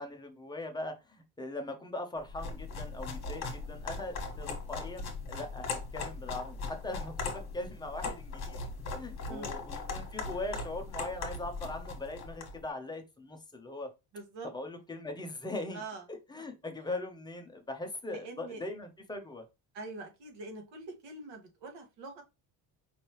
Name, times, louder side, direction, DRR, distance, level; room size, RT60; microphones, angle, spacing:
voice 1, 0.0-13.9 14.4-15.8 16.1-19.5, left 2 dB, 10° left, 4 dB, 0.5 m, -40 dB
sound 1, 2.3-12.6, left 4 dB, 35° left, 1.4 m, -39 dB
voice 2, 9.3-9.6 14.1-14.5 15.7-16.0 18.2-18.6 19.7-22.2, right 3 dB, 75° right, 3 dB, 1.6 m, -44 dB
5.4 x 3.2 x 3.0 m, 0.26 s
cardioid pair, 175°, 44 cm